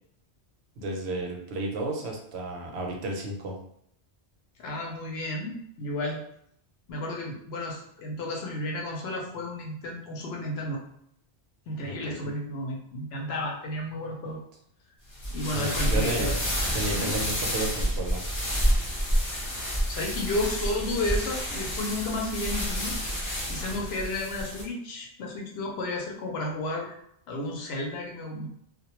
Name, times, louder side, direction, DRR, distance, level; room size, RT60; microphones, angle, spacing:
voice 1, 0.8-3.5 11.8-12.3 15.5-16.3 16.7-18.2, right 1 dB, 70° right, 0 dB, 0.8 m, -32 dB
voice 2, 4.6-6.2 6.9-10.8 11.7-14.4 15.3-16.3 16.9-17.1 19.3-27.0 27.3-28.5, left 1 dB, 70° left, 0 dB, 0.8 m, -33 dB
sound 1, 15.1-24.6, equal, 25° left, 0.4 m, -29 dB
2.1 x 2.1 x 2.9 m, 0.70 s
omnidirectional pair, 1.2 m